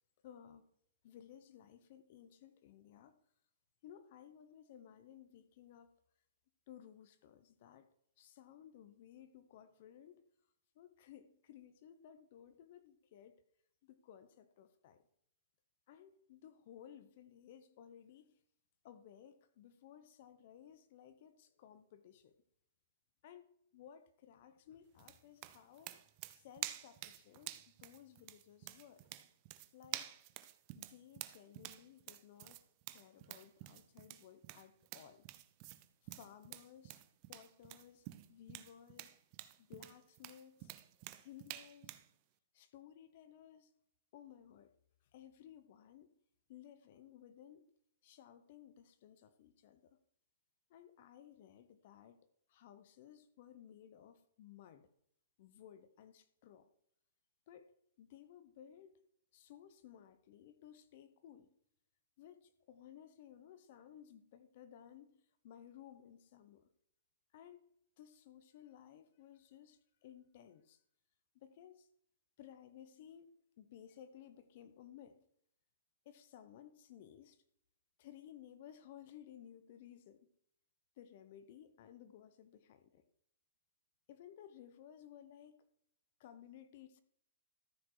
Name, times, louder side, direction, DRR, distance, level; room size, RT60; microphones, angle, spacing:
voice 1, 0.2-0.6 1.0-3.1 3.8-5.9 6.7-7.9 8.2-10.2 10.7-13.4 13.8-15.1 15.9-18.4 18.8-22.3 23.2-26.0 26.3-27.5 27.8-29.1 29.7-30.1 30.7-32.6 32.9-35.3 36.1-37.0 37.3-39.1 39.6-40.7 41.2-42.0 42.5-43.7 44.1-44.7 45.1-46.1 46.5-47.7 48.0-50.0 50.7-54.9 55.4-56.7 57.5-57.7 58.0-59.0 59.3-61.5 62.2-66.7 67.3-67.6 68.0-70.8 71.3-71.9 72.4-75.2 76.0-77.4 78.0-80.3 81.0-83.0 84.1-85.6 86.2-87.0, left 10 dB, 40° left, 0.9 m, -58 dB
sound 1, 25.0-42.1, right 16 dB, 30° right, 0.6 m, -49 dB
13.5 x 7.1 x 4.7 m
hypercardioid pair, 170°, 0 cm